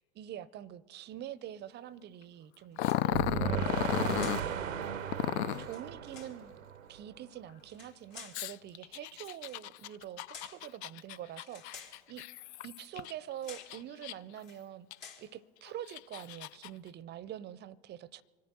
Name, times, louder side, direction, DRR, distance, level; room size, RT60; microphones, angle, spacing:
voice 1, 0.2-5.2 5.6-6.5 6.9-12.3 12.6-14.9 15.2-18.2, right 11 dB, 30° right, 0.6 m, -45 dB
sound 1, 2.8-3.3 4.2-4.5 5.5-6.4 7.6-8.5 9.4-9.6 10.3-10.6 11.5-12.0 12.9-13.1 13.4-13.8 14.4-14.6 15.0-15.3, left 6 dB, 80° left, 2.9 m, -51 dB
Growling, 2.8-4.4 5.1-5.7 8.3-13.1 13.6-14.4 14.9-15.0 15.7-16.7, left 13 dB, 60° left, 0.5 m, -34 dB
sound 2, 3.1-7.2, right 9 dB, 90° right, 0.7 m, -36 dB
25.0 x 8.5 x 6.1 m
hypercardioid pair, 85°, 38 cm